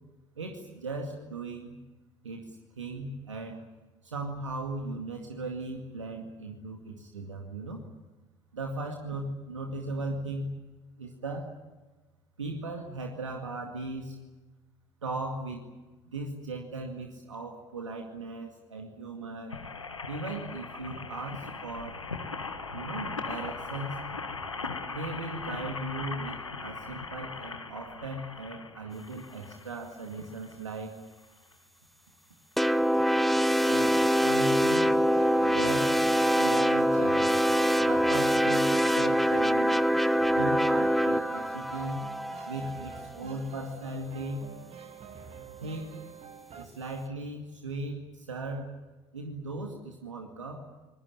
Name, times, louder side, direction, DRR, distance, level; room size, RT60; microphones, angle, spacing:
voice 1, 0.4-1.8 2.2-3.6 4.0-7.9 8.5-10.5 11.0-11.5 12.4-14.2 15.0-15.7 16.1-19.6 20.1-22.0 22.7-24.0 24.9-31.0 33.6-35.0 35.4-36.0 36.4-37.4 37.8-39.9 40.3-42.0 42.5-44.5 45.6-46.0 46.6-48.8 49.1-50.7, right 2 dB, 85° right, 2 dB, 2.2 m, -37 dB
sound 1, 19.5-30.6 31.2-31.3 31.5-31.6, left 4 dB, 90° left, 1.6 m, -39 dB
sound 2, 32.6-43.1, equal, ahead, 0.9 m, -24 dB
sound 3, 33.8-46.7, right 7 dB, 40° right, 2.5 m, -47 dB
25.5 x 20.0 x 8.9 m, 1.2 s
figure-of-eight pair, 60°, 15 cm